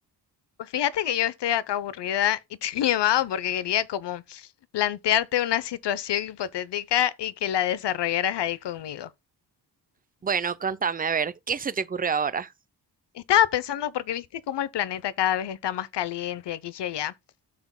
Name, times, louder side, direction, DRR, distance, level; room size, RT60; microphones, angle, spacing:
voice 1, 0.6-4.5 4.7-9.1 13.2-17.1, left 11 dB, 80° left, 0.8 m, -26 dB
voice 2, 10.2-12.5, right 6 dB, 20° right, 0.5 m, -27 dB
13.0 x 6.0 x 2.2 m
wide cardioid pair, 140°, 41 cm